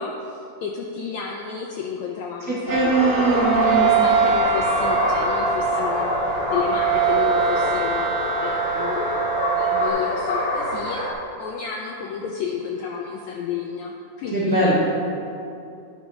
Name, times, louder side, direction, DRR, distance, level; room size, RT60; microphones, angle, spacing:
voice 1, 0.0-3.3 3.5-11.0 11.4-14.7, left 6 dB, 85° left, 0 dB, 1.6 m, -31 dB
voice 2, 2.5-3.9 14.3-14.7, right 2 dB, 50° right, -9 dB, 1.1 m, -21 dB
sound 1, 2.7-9.9, right 5 dB, 75° right, 1.5 m, -23 dB
sound 2, 2.9-11.1, left 1 dB, 50° left, 1.9 m, -26 dB
10.0 x 4.7 x 5.4 m, 2.6 s
omnidirectional pair, 3.8 m